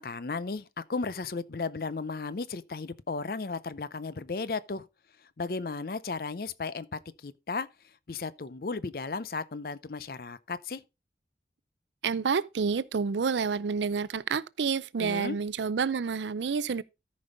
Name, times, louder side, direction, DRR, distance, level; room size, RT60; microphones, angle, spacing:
voice 1, 0.0-4.9 5.2-7.7 8.1-10.8 15.0-15.4, left 4 dB, 55° left, 0.5 m, -35 dB
voice 2, 12.0-16.8, right 5 dB, 85° right, 0.5 m, -29 dB
13.5 x 5.3 x 3.9 m
head